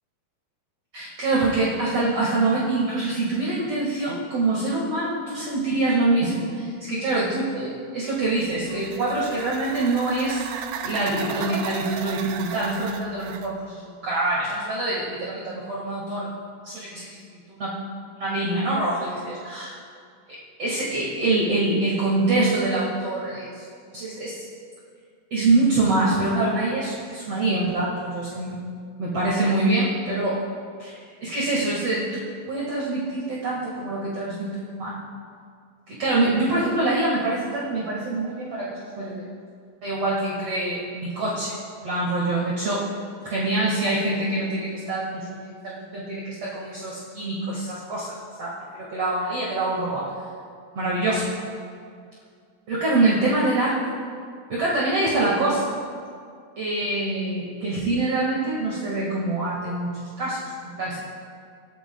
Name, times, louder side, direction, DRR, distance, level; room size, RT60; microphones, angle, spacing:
voice 1, 0.9-10.5 10.8-16.3 16.6-17.8 18.1-19.8 20.3-23.7 23.9-24.4 25.3-28.6 29.0-30.4 30.8-35.0 35.9-39.2 39.8-41.5 41.8-42.8 43.2-50.0 50.7-51.3 52.7-53.9 54.5-55.6 56.6-61.0, right 2 dB, 45° right, -6 dB, 2.7 m, -25 dB
sound 1, 8.2-13.5, right 7 dB, 80° right, 2.3 m, -35 dB
26.5 x 13.5 x 2.3 m, 2.2 s
omnidirectional pair, 4.1 m